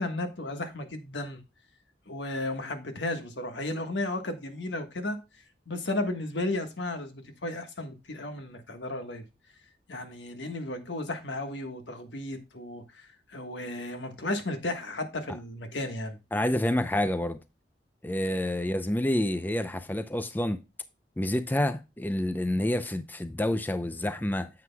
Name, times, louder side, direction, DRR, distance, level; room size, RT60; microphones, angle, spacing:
voice 1, 0.0-1.4 2.1-5.2 5.7-9.2 9.9-16.2, left 2 dB, 85° left, 1.4 m, -34 dB
voice 2, 16.3-17.4 18.0-20.6 21.2-24.5, left 1 dB, 10° left, 0.4 m, -28 dB
9.2 x 7.8 x 2.2 m
head